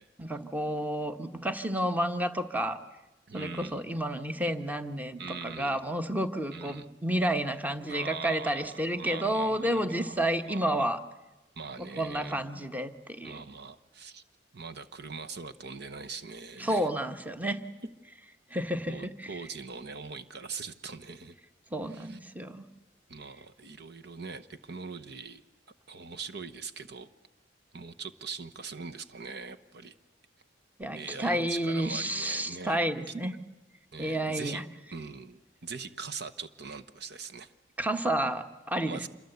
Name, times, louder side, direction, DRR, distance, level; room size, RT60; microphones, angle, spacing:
voice 1, 0.2-2.8 3.3-11.0 12.0-13.4 16.6-17.6 18.5-19.3 21.7-22.6 30.8-33.3 34.0-34.6 37.8-39.0, right 1 dB, 10° right, 9 dB, 1.2 m, -30 dB
voice 2, 3.3-3.8 5.2-5.8 6.5-6.9 7.9-10.9 11.6-12.5 13.2-14.2 14.5-16.9 18.9-21.4 21.8-22.2 23.1-25.4 25.9-27.1 27.7-29.9 30.9-32.8 33.9-34.6 34.9-37.5 38.8-39.1, right 5 dB, 60° right, 9 dB, 1.1 m, -42 dB
27.0 x 23.0 x 8.1 m, 1.1 s
head